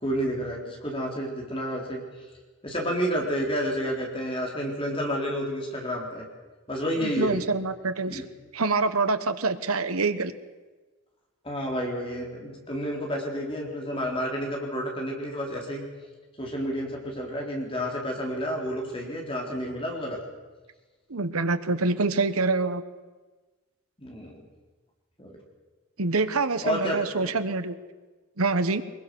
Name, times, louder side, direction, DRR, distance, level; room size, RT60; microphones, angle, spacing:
voice 1, 0.0-2.0 2.6-6.3 6.7-7.4 8.1-8.2 11.4-15.8 16.4-20.2 24.0-24.4 25.2-25.3 26.6-27.3, equal, 25° left, 0 dB, 3.9 m, -30 dB
voice 2, 7.0-8.3 8.5-10.3 21.1-22.8 26.0-27.7 28.4-28.8, right 3 dB, 85° right, 11 dB, 1.3 m, -26 dB
23.0 x 22.0 x 6.3 m, 1.3 s
head